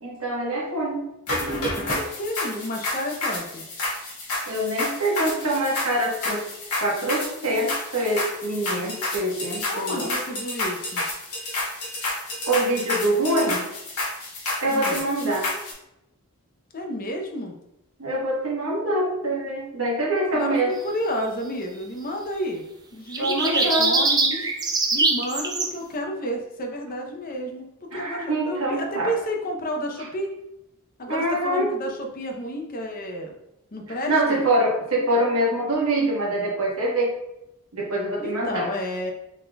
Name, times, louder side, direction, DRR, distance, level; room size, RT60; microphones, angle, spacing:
voice 1, 0.0-1.0 4.5-6.4 6.8-10.1 12.5-13.6 14.6-15.5 18.0-20.7 23.2-24.0 27.9-29.1 31.1-31.7 34.1-37.2 37.7-38.7, right 1 dB, 70° right, -3 dB, 1.1 m, -24 dB
sound 1, 1.3-15.7, left 2 dB, 75° left, 1.4 m, -30 dB
voice 2, 2.0-3.6 9.7-11.0 14.7-15.0 16.7-17.5 20.3-22.6 22.9-24.5 24.9-30.3 31.0-33.4 33.7-34.4 38.2-39.1, equal, 40° left, 2 dB, 0.6 m, -31 dB
sound 2, 23.1-25.7, right 3 dB, 15° right, 0.4 m, -22 dB
4.0 x 3.9 x 2.2 m, 0.88 s
head